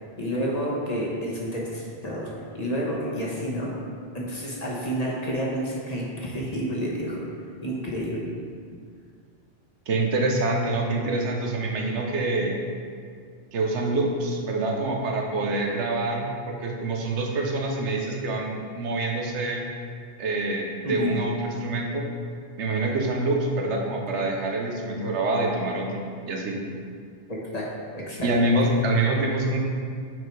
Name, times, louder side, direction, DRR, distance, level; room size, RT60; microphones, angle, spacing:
voice 1, 0.2-3.7 4.1-7.2 7.6-8.3 20.8-21.1 27.3-27.6 27.9-28.3, equal, 35° left, -4 dB, 1.1 m, -29 dB
voice 2, 9.9-12.5 13.5-19.6 20.2-22.1 22.6-26.6 28.2-29.6, right 2 dB, 90° right, 0 dB, 1.1 m, -26 dB
6.1 x 4.5 x 4.7 m, 2.2 s
omnidirectional pair, 1.2 m